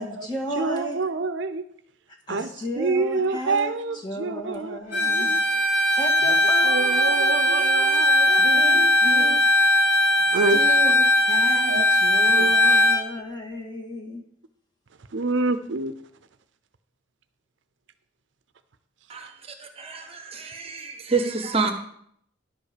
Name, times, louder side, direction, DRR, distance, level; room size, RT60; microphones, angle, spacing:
voice 1, 0.0-1.0 2.3-3.7 4.0-5.3 5.7-9.4 10.2-14.2, equal, 20° left, 2.0 m, -34 dB
voice 2, 0.6-1.7 2.3-2.5 2.8-5.4 6.2-6.3 6.6-9.4 10.3-10.8 11.7-11.9 12.4-12.5 15.1-15.9, right 3 dB, 65° right, 0.6 m, -27 dB
Bowed string instrument, 4.9-13.0, left 1 dB, 65° left, 5.2 m, -19 dB
voice 3, 19.1-21.7, right 4 dB, 30° right, 0.9 m, -28 dB
11.0 x 5.4 x 6.7 m
head